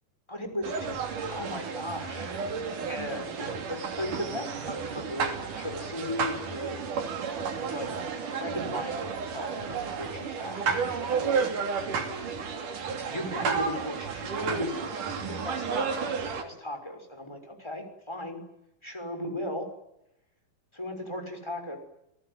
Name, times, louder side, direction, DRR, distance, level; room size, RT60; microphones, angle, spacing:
voice 1, 0.3-2.3 2.7-6.8 7.7-7.9 8.2-11.4 11.7-18.4 18.8-19.7 20.7-21.8, left 1 dB, 5° left, 4 dB, 5.7 m, -37 dB
sound 1, 0.6-16.4, right 5 dB, 70° right, 4.3 m, -32 dB
30.0 x 18.5 x 9.8 m, 0.84 s
omnidirectional pair, 3.8 m